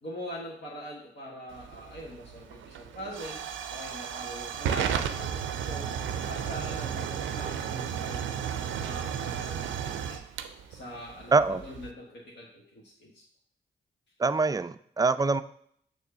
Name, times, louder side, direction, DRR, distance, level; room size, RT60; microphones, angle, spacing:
voice 1, 0.0-3.4 3.7-5.9 6.2-10.2 10.7-13.2, equal, 65° left, -4 dB, 1.5 m, -42 dB
Hiss / Fire / Tick, 1.5-11.9, right 8 dB, 85° right, 0.4 m, -34 dB
voice 2, 11.3-11.6 14.2-15.4, right 4 dB, 20° right, 13 dB, 0.4 m, -24 dB
6.5 x 3.1 x 5.5 m, 0.66 s
supercardioid pair, 40°, 20 cm